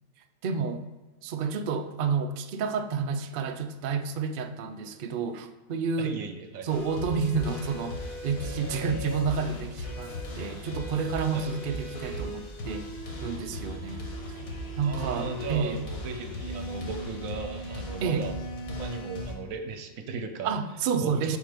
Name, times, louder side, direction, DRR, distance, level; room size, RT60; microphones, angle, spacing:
voice 1, 0.4-0.8 1.2-6.2 6.6-8.0 8.2-12.9 13.2-14.1 14.8-15.8 18.0-18.3 20.4-21.4, right 5 dB, 65° right, 8 dB, 0.5 m, -30 dB
voice 2, 6.0-6.7 11.3-11.5 14.8-18.3 18.8-20.5 21.0-21.4, right 5 dB, 85° right, 6 dB, 1.1 m, -37 dB
sound 1, 6.7-19.3, left 1 dB, 90° left, 1.7 m, -37 dB
7.1 x 2.8 x 5.1 m, 1.2 s
omnidirectional pair, 1.4 m